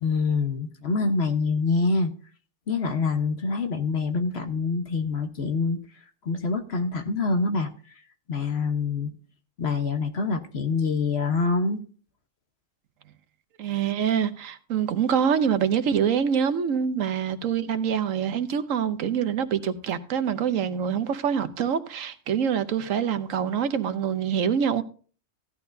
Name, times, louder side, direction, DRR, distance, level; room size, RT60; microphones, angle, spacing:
voice 1, 0.0-2.1 2.7-5.8 6.2-7.7 8.3-9.1 9.6-11.8, left 4 dB, 55° left, 1.3 m, -25 dB
voice 2, 13.6-24.8, right 8 dB, 85° right, 1.2 m, -25 dB
15.0 x 11.5 x 2.7 m
omnidirectional pair, 1.3 m